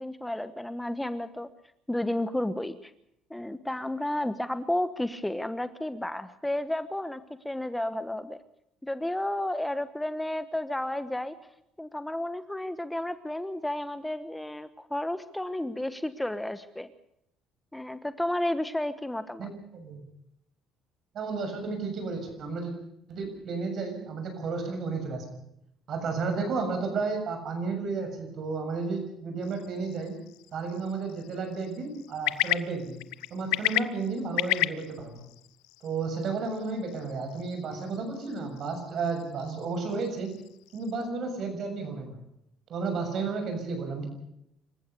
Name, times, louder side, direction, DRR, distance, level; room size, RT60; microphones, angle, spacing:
voice 1, 0.0-1.5 1.9-2.9 3.3-8.4 8.8-11.3 11.8-16.9 17.7-19.5, left 1 dB, 5° left, 12 dB, 1.2 m, -32 dB
voice 2, 19.4-20.1 21.1-22.7 23.1-25.4 25.9-30.2 30.5-33.0 33.3-35.3 35.8-40.3 40.7-42.2 42.7-44.1, right 4 dB, 55° right, 6 dB, 7.1 m, -32 dB
sound 1, 29.4-41.1, left 20 dB, 90° left, 0.7 m, -35 dB
26.5 x 15.0 x 6.8 m, 0.78 s
supercardioid pair, 90°, 0 cm